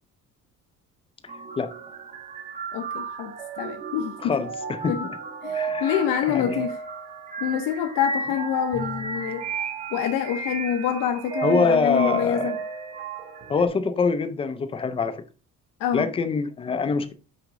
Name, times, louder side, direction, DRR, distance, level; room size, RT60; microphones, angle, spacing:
sound 1, 1.3-13.7, right 5 dB, 20° right, 0.8 m, -33 dB
voice 1, 2.7-4.4 4.9-5.1 5.4-6.7 7.4-9.5 9.9-12.6 15.8-16.1, left 9 dB, 85° left, 0.9 m, -26 dB
voice 2, 4.2-5.2 5.5-5.9 6.3-6.6 11.4-12.6 13.5-15.2 15.9-17.1, left 5 dB, 20° left, 0.4 m, -25 dB
Bowed string instrument, 8.7-9.6, left 3 dB, 60° right, 1.4 m, -39 dB
6.1 x 5.0 x 3.7 m
cardioid pair, 175°, 32 cm